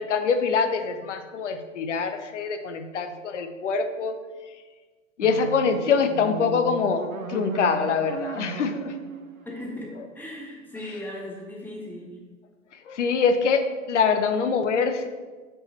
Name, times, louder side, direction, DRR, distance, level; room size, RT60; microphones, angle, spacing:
voice 1, 0.0-4.1 5.2-7.0 7.3-8.9 12.9-15.1, left 5 dB, 60° left, 8 dB, 0.7 m, -24 dB
sound 1, 5.2-10.3, right 5 dB, 85° right, 0.6 m, -37 dB
voice 2, 9.4-12.2, left 1 dB, 5° left, -2 dB, 0.6 m, -37 dB
5.0 x 4.7 x 4.3 m, 1.4 s
figure-of-eight pair, 100°, 40 cm